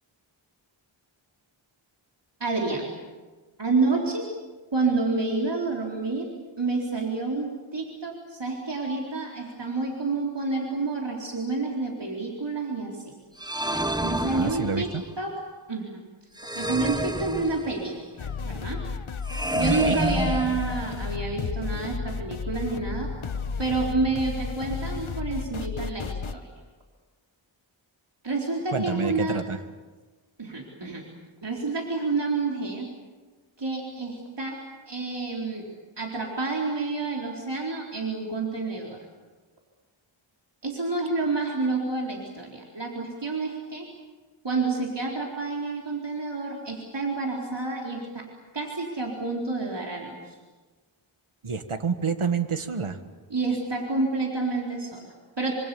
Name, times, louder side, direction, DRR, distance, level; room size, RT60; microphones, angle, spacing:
voice 1, 2.4-2.9 3.6-4.3 4.7-6.3 6.6-13.1 13.7-14.9 15.2-15.3 15.7-16.0 16.5-18.8 19.5-23.1 23.6-26.5 28.2-29.4 30.4-31.1 31.4-32.9 33.6-34.6 34.9-35.7 36.0-39.0 40.6-43.9 44.4-48.2 48.5-50.4 53.3-55.5, right 3 dB, 55° right, -1 dB, 4.4 m, -29 dB
sound 1, 13.4-15.1 16.4-18.0 19.3-21.1, right 1 dB, 10° right, 1.0 m, -29 dB
voice 2, 14.2-15.0 19.7-20.0 28.7-29.6 51.4-53.0, right 5 dB, 85° right, 8 dB, 1.8 m, -28 dB
sound 2, 18.2-26.3, left 5 dB, 75° left, 1.1 m, -33 dB
26.0 x 26.0 x 7.2 m, 1.3 s
wide cardioid pair, 45°, 49 cm